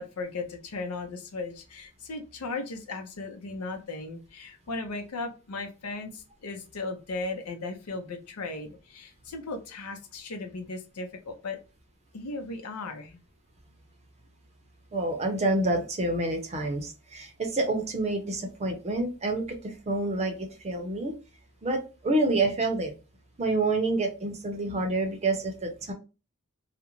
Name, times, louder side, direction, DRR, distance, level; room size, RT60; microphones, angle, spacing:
voice 1, 0.0-11.6 12.1-13.2, left 3 dB, 90° left, 6 dB, 0.6 m, -37 dB
voice 2, 14.9-21.1 21.6-22.9 23.4-25.9, right 2 dB, 30° right, 4 dB, 0.5 m, -28 dB
2.4 x 2.1 x 2.9 m, 0.31 s
head